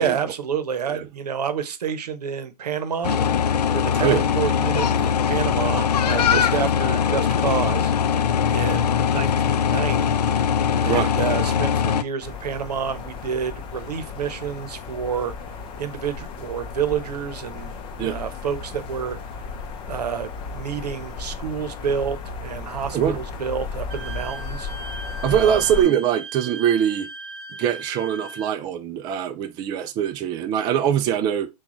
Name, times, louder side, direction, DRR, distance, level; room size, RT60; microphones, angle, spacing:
voice 1, 0.0-3.2 3.7-7.9 8.5-10.2 10.8-15.3 15.8-17.7 18.0-19.2 19.9-24.7 25.3-25.6, right 7 dB, 80° right, 0.8 m, -29 dB
sound 1, 3.0-12.0, left 7 dB, 80° left, 0.5 m, -21 dB
sound 2, 12.2-25.8, left 5 dB, 25° left, 0.6 m, -35 dB
Wind instrument woodwind instrument, 23.9-28.6, right 3 dB, 45° right, 0.9 m, -37 dB
voice 2, 25.2-27.1 27.6-31.5, right 9 dB, 20° right, 0.3 m, -22 dB
6.0 x 2.3 x 3.0 m
hypercardioid pair, 130°, 20 cm